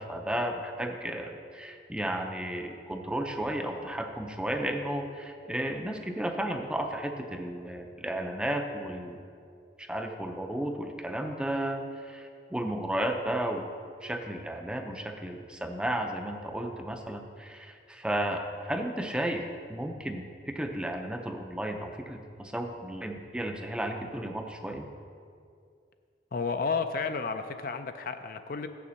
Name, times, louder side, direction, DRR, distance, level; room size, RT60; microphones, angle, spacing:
voice 1, 0.0-9.2 9.8-13.7 14.0-24.9, right 1 dB, 5° right, 4 dB, 0.5 m, -33 dB
voice 2, 26.3-28.7, left 5 dB, 50° left, 8 dB, 0.4 m, -32 dB
7.5 x 6.9 x 6.3 m, 2.3 s
head